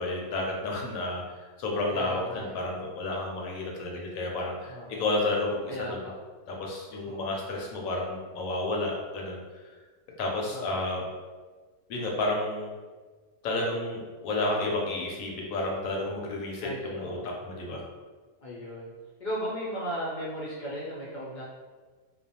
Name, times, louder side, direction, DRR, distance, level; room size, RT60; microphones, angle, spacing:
voice 1, 0.0-5.7 6.5-9.4 10.2-11.1 11.9-12.7 13.4-17.8, left 2 dB, 75° left, -1 dB, 1.0 m, -31 dB
voice 2, 1.9-2.5 4.7-5.0 5.7-6.1 7.0-7.3 10.5-10.8 16.6-17.3 18.4-18.9 19.2-21.4, equal, 55° left, -6 dB, 0.5 m, -36 dB
2.4 x 2.1 x 2.7 m, 1.4 s
omnidirectional pair, 1.5 m